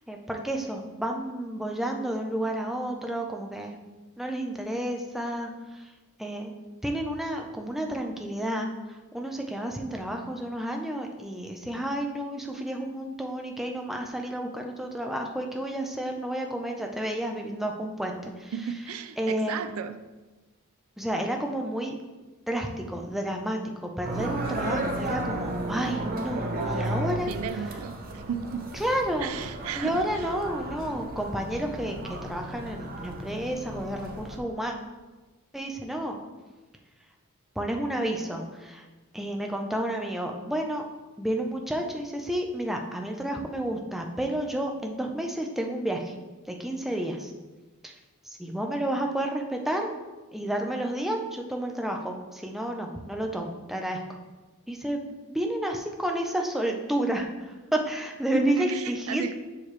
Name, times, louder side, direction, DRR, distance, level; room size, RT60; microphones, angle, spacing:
voice 1, 0.1-3.8 4.2-5.9 6.2-6.5 6.8-18.5 19.2-19.7 21.0-21.9 22.5-27.3 28.8-29.3 29.8-34.7 35.5-36.2 37.6-38.8 39.1-40.8 41.2-46.1 46.5-47.3 47.8-47.9 48.3-49.9 50.3-54.0 54.7-59.3, right 1 dB, ahead, 2 dB, 0.6 m, -31 dB
voice 2, 18.5-20.0 27.3-28.7 29.2-30.3 58.3-59.3, right 7 dB, 70° right, 12 dB, 0.4 m, -34 dB
sound 1, 24.0-34.4, right 1 dB, 40° right, 0.8 m, -34 dB
7.2 x 6.4 x 3.3 m, 1.2 s
head